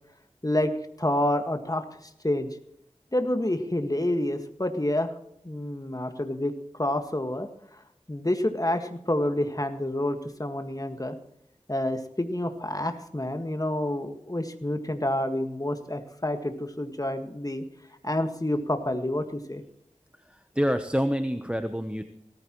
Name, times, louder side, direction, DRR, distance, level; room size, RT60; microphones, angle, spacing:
voice 1, 1.0-1.8 2.2-2.5 3.1-5.1 5.4-6.5 6.8-7.5 8.1-11.2 11.7-17.6 18.0-19.6, left 1 dB, 30° left, 6 dB, 1.7 m, -28 dB
voice 2, 20.3-22.0, equal, 10° right, 8 dB, 0.9 m, -27 dB
18.0 x 14.5 x 3.1 m, 0.75 s
wide cardioid pair, 50°, 13 cm